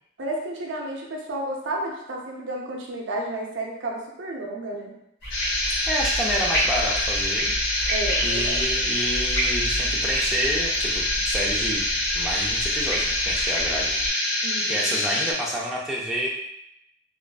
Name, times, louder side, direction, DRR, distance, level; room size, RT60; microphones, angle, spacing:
voice 1, 0.2-5.0 7.9-8.6 14.4-15.0, right 1 dB, 70° right, -1 dB, 0.5 m, -32 dB
sound 1, 5.2-14.1, equal, 50° left, 1.0 m, -31 dB
sound 2, 5.3-15.3, left 1 dB, 80° left, 0.6 m, -25 dB
voice 2, 5.8-7.6 8.2-14.0 14.7-16.3, equal, ahead, -6 dB, 0.4 m, -29 dB
2.5 x 2.3 x 2.2 m, 0.79 s
head